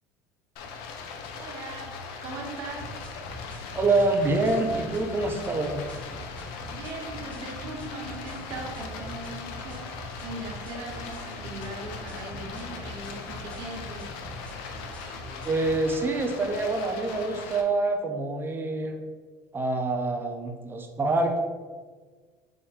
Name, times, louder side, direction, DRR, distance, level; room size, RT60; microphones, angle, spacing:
Stream, 0.6-17.6, left 5 dB, 75° left, 0.5 m, -40 dB
voice 1, 1.3-1.9 2.2-2.9 6.7-14.1, right 2 dB, 60° right, -1 dB, 1.0 m, -39 dB
sound 1, 2.6-16.0, left 1 dB, 15° left, 0.7 m, -42 dB
voice 2, 3.7-5.8 15.4-19.0 19.5-21.4, right 2 dB, 25° right, 4 dB, 0.5 m, -26 dB
3.6 x 2.2 x 4.2 m, 1.5 s
supercardioid pair, 100°, 9 cm